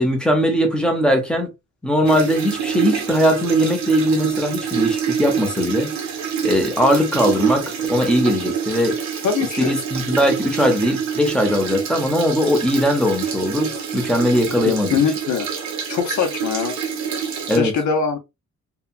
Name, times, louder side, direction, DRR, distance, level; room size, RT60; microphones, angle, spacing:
voice 1, 0.0-1.5 1.8-5.9 6.4-9.0 9.6-15.0 17.5-17.7, equal, 5° left, 0.6 m, -19 dB
sound 1, 2.1-17.6, right 7 dB, 70° right, 0.8 m, -26 dB
voice 2, 9.2-9.7 14.9-15.5 15.9-16.8 17.5-18.2, left 6 dB, 80° left, 0.7 m, -22 dB
2.8 x 2.2 x 2.3 m
wide cardioid pair, 155°, 29 cm